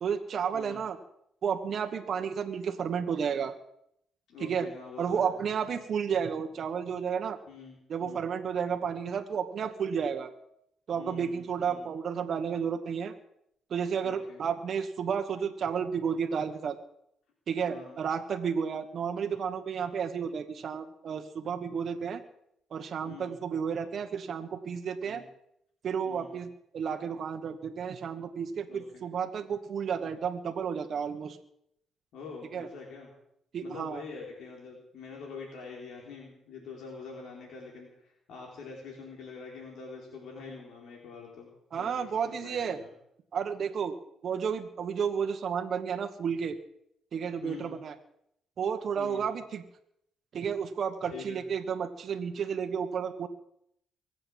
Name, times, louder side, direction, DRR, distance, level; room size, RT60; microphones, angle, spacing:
voice 1, 0.0-1.0 1.4-3.5 4.4-4.7 5.0-7.4 7.9-10.3 10.9-13.1 13.7-16.8 17.5-22.2 22.7-25.2 25.8-26.5 26.7-31.4 32.5-32.7 33.5-34.0 41.7-42.8 43.3-44.0 44.2-46.6 47.1-47.9 48.6-49.6 50.3-53.3, right 7 dB, 55° right, 5 dB, 1.3 m, -32 dB
voice 2, 4.3-5.3 5.7-5.8 7.5-8.2 10.9-11.9 14.0-14.4 17.7-18.0 23.0-23.4 25.0-25.2 26.1-26.4 28.7-29.0 32.1-33.1 33.6-41.5 41.7-42.9 47.4-47.8 49.0-49.2 51.1-51.4, left 5 dB, 75° left, -1 dB, 4.2 m, -45 dB
23.0 x 7.9 x 7.6 m, 0.73 s
cardioid pair, 90°, 0 cm